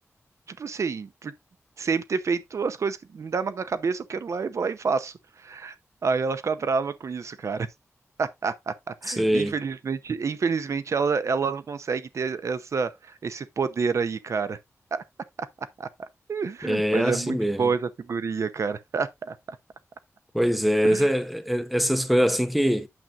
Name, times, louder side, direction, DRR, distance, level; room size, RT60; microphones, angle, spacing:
voice 1, 0.5-1.3 1.8-5.7 6.0-7.7 8.2-14.6 14.9-15.0 15.4-15.5 15.8-19.4 20.8-21.1, right 5 dB, 65° right, 0.7 m, -28 dB
voice 2, 9.1-9.5 16.6-17.7 20.3-22.9, equal, ahead, 0.8 m, -23 dB
8.9 x 7.2 x 2.5 m
wide cardioid pair, 125°, 5 cm